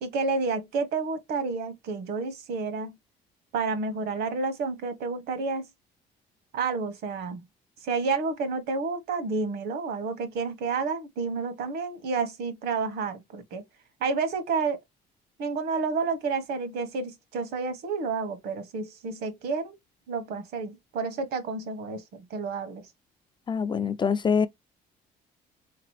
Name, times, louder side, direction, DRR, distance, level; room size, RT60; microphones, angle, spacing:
voice 1, 0.0-2.9 3.5-5.6 6.5-7.4 7.8-13.6 14.0-14.8 15.4-19.7 20.1-22.8, right 4 dB, 70° right, 1.2 m, -30 dB
voice 2, 23.5-24.5, left 6 dB, 25° left, 0.4 m, -24 dB
3.7 x 2.9 x 3.2 m
cardioid pair, 110°, 17 cm